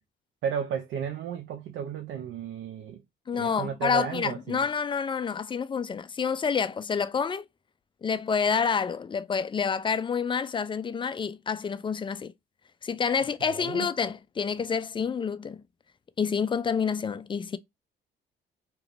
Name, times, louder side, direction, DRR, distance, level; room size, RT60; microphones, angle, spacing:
voice 1, 0.4-3.0 3.3-4.7 13.4-13.9, right 8 dB, 75° right, 0.5 m, -33 dB
voice 2, 3.3-7.4 8.0-12.3 12.8-15.6 16.2-17.6, left 6 dB, 25° left, 0.3 m, -28 dB
3.0 x 2.4 x 3.2 m
cardioid pair, 90°, 20 cm